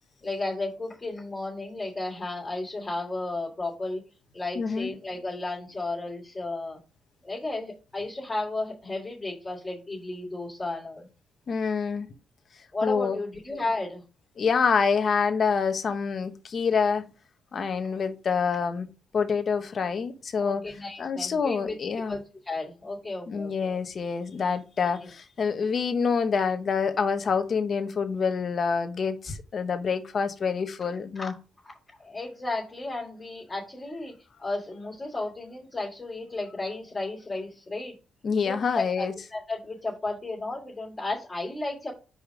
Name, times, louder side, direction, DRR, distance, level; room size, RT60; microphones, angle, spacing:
voice 1, 0.2-4.0 4.3-6.8 7.2-11.1 12.7-14.0 20.4-23.8 25.0-25.1 31.1-31.3 31.6-31.7 32.0-34.1 34.4-37.9 38.4-41.9, left 2 dB, 20° left, 3.2 m, -33 dB
voice 2, 4.5-4.9 11.5-12.1 12.8-13.2 14.4-17.1 17.5-18.9 19.1-20.6 21.0-22.2 23.3-31.3 38.2-39.1, left 5 dB, 45° left, 1.2 m, -26 dB
5.5 x 5.1 x 5.1 m
cardioid pair, 90°, 0 cm